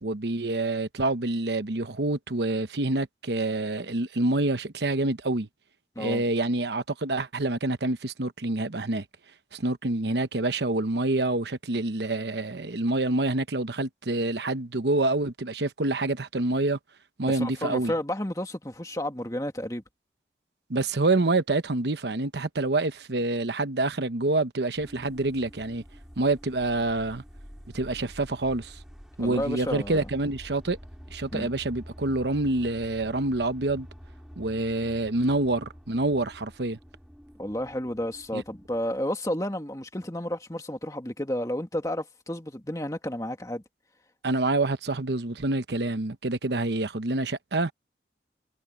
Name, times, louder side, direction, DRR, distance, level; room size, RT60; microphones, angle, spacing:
voice 1, 0.0-5.5 6.0-9.0 9.5-16.8 17.2-17.9 20.7-25.8 26.2-27.2 27.7-28.8 29.2-30.8 31.1-33.9 34.4-36.8 38.3-38.4 44.2-47.7, right 2 dB, 80° right, 1.0 m, -27 dB
voice 2, 17.2-19.8 29.2-30.1 31.3-31.5 37.4-43.6, left 1 dB, 20° left, 2.2 m, -31 dB
sound 1, 24.7-38.9, equal, 5° right, 6.0 m, -47 dB
head